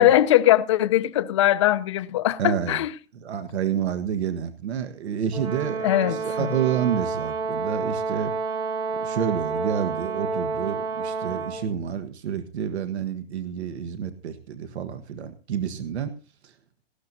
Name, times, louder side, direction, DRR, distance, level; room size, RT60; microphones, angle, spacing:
voice 1, 0.0-2.9 5.8-6.5, left 14 dB, 30° left, 0.5 m, -20 dB
voice 2, 2.4-2.8 3.1-8.3 9.0-16.1 16.4-16.5, right 8 dB, 80° right, 1.5 m, -29 dB
Brass instrument, 5.3-11.7, right 4 dB, 10° right, 0.9 m, -29 dB
18.5 x 15.0 x 2.7 m
hypercardioid pair, 165°, 32 cm